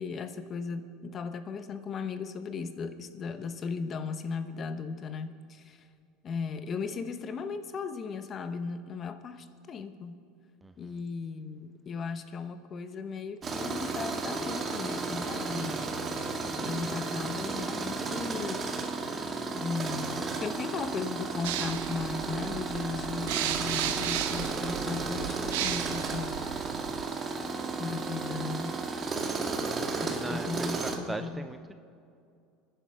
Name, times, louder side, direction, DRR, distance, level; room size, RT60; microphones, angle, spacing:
voice 1, 0.0-5.8 6.2-10.2 10.8-15.9 16.6-18.6 19.5-26.3 27.8-28.8 30.0-31.5, left 5 dB, 35° left, 10 dB, 1.0 m, -37 dB
voice 2, 10.6-11.0 16.6-17.0 29.9-30.7 31.1-31.7, right 2 dB, 10° right, 9 dB, 0.5 m, -41 dB
Tools, 13.4-31.0, right 4 dB, 30° right, 1.7 m, -33 dB
sound 1, 21.4-27.0, right 11 dB, 80° right, 0.9 m, -35 dB
25.5 x 10.5 x 5.1 m, 2.4 s
supercardioid pair, 120°, 0 cm